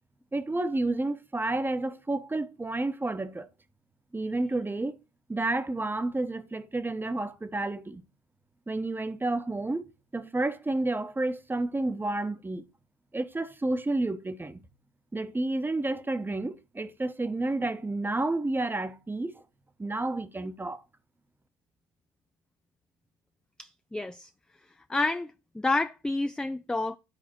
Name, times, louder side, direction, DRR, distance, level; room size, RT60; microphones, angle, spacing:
voice 1, 0.3-3.5 4.1-5.0 5.3-8.0 8.7-9.8 10.1-12.6 13.1-14.6 15.1-19.3 19.8-20.8, right 2 dB, 15° right, 1.0 m, -30 dB
voice 2, 23.6-24.3 24.9-25.3 25.5-27.0, left 2 dB, 5° left, 0.4 m, -29 dB
11.0 x 4.1 x 4.4 m
hypercardioid pair, 65°, 15 cm